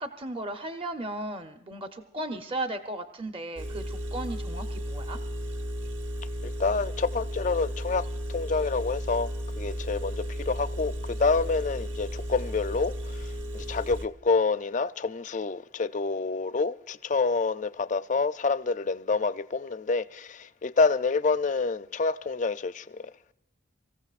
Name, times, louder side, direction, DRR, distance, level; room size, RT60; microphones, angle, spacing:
voice 1, 0.0-5.2, right 1 dB, 25° right, 0.7 m, -36 dB
Engine, 3.6-14.1, equal, 75° right, 1.0 m, -34 dB
voice 2, 6.4-8.0 8.3-9.3 9.6-23.1, left 4 dB, 40° left, 0.4 m, -27 dB
25.0 x 15.0 x 2.4 m
head